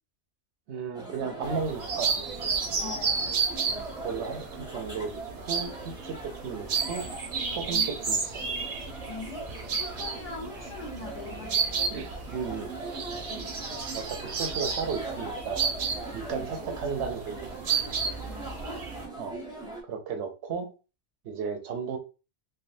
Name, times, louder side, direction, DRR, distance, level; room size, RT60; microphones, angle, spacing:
voice 1, 0.7-2.1 3.7-7.1 7.5-8.6 11.9-12.7 13.9-15.7 16.1-17.7 19.2-19.4 19.9-20.7 21.2-22.0, right 5 dB, 80° right, 0.9 m, -34 dB
sound 1, 0.9-19.8, right 2 dB, 5° right, 0.7 m, -41 dB
sound 2, 1.4-19.0, right 5 dB, 55° right, 0.7 m, -32 dB
voice 2, 2.8-3.4 7.7-8.0 9.1-11.9 13.3-13.6 16.1-16.6 18.3-18.7, left 3 dB, 50° left, 1.1 m, -42 dB
3.3 x 2.2 x 2.5 m
omnidirectional pair, 1.1 m